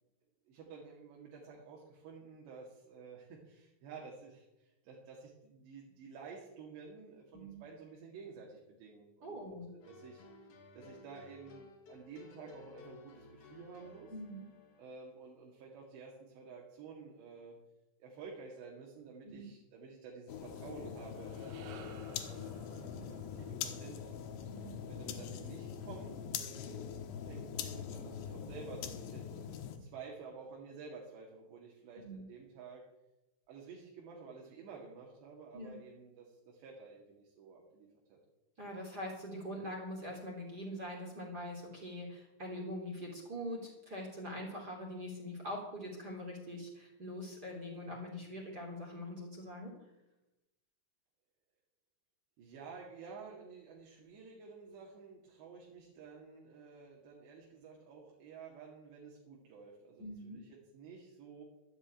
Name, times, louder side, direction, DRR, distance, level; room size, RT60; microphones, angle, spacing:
voice 1, 0.5-10.2 10.7-14.1 14.8-17.6 18.0-21.3 21.7-24.4 24.9-29.3 29.8-32.8 33.5-38.2 52.4-61.4, right 5 dB, 65° right, -2 dB, 4.1 m, -52 dB
voice 2, 9.2-9.7 14.1-14.4 19.2-19.5 24.5-24.8 32.0-32.2 35.5-35.8 38.6-49.7 60.0-60.4, equal, 25° right, -1 dB, 2.6 m, -43 dB
sound 1, 9.8-15.0, left 3 dB, 90° left, 1.3 m, -56 dB
sound 2, 20.3-29.8, left 8 dB, 75° left, 3.3 m, -43 dB
sound 3, 20.9-25.4, right 8 dB, 85° right, 4.0 m, -58 dB
12.5 x 9.0 x 8.8 m, 0.97 s
omnidirectional pair, 5.7 m